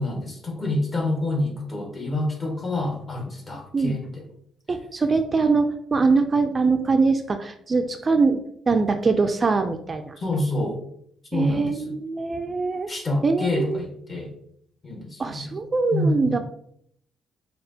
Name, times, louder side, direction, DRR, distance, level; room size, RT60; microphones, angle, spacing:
voice 1, 0.0-4.3 10.2-10.8 11.3-12.0 12.9-14.3 14.8-15.5 15.9-16.4, left 1 dB, 35° left, 0 dB, 1.4 m, -27 dB
voice 2, 4.7-10.1 11.3-12.9 13.2-13.8 15.2-16.4, right 4 dB, 35° right, 7 dB, 0.3 m, -23 dB
6.6 x 2.4 x 2.7 m, 0.69 s
cardioid pair, 90°, 0 cm